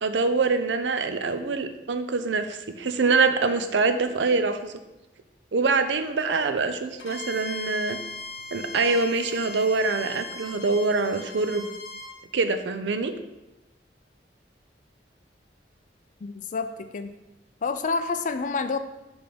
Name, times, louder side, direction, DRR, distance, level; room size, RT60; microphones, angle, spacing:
voice 1, 0.0-4.7 5.5-8.0 8.5-11.7 12.3-13.1, right 4 dB, 80° right, 8 dB, 0.5 m, -24 dB
Bowed string instrument, 7.0-12.2, left 2 dB, 80° left, 0.9 m, -39 dB
voice 2, 16.2-16.7 16.9-17.1 17.6-18.8, left 4 dB, 45° left, 9 dB, 0.4 m, -28 dB
5.9 x 3.5 x 5.1 m, 1.0 s
head